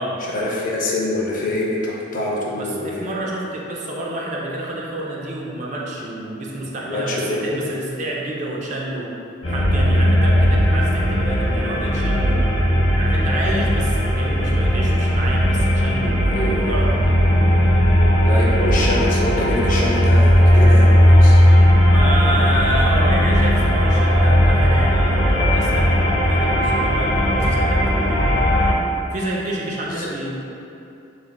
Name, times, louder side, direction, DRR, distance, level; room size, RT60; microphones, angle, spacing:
voice 1, 0.2-3.2 6.8-7.6 16.3-16.7 18.2-21.4 29.9-30.1, left 1 dB, 45° left, -3 dB, 0.5 m, -25 dB
voice 2, 2.6-9.1 9.5-12.5 13.0-17.2 21.9-28.2 29.1-30.3, right 1 dB, 40° right, -3 dB, 0.4 m, -28 dB
sound 1, 9.4-28.7, equal, 85° left, 0.6 m, -16 dB
3.6 x 3.2 x 2.3 m, 2.8 s
head